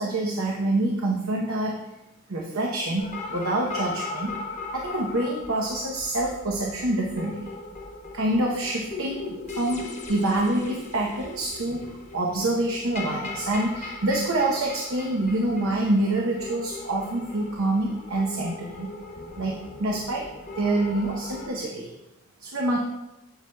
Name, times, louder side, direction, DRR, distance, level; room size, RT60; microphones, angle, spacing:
voice 1, 0.0-1.8 2.3-4.3 4.7-7.5 8.1-18.9 19.4-20.3 20.6-21.9 22.4-22.8, right 1 dB, 70° right, -1 dB, 0.8 m, -26 dB
sound 1, 3.0-21.5, left 3 dB, 35° left, 1.0 m, -39 dB
8.0 x 7.9 x 2.3 m, 0.97 s
head